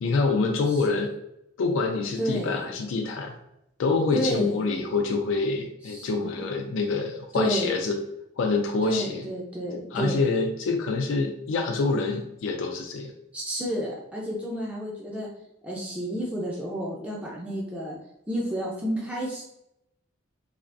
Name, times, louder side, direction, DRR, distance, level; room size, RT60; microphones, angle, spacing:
voice 1, 0.0-1.1 1.6-3.4 3.8-8.0 8.4-9.2 9.7-13.1, left 4 dB, 75° left, 3 dB, 0.3 m, -26 dB
voice 2, 0.7-1.1 2.2-2.7 4.1-4.5 5.9-6.4 7.3-7.7 8.8-10.2 13.3-15.3 15.6-18.0 18.3-19.4, equal, 5° right, -4 dB, 0.4 m, -30 dB
3.4 x 2.4 x 2.5 m, 0.83 s
head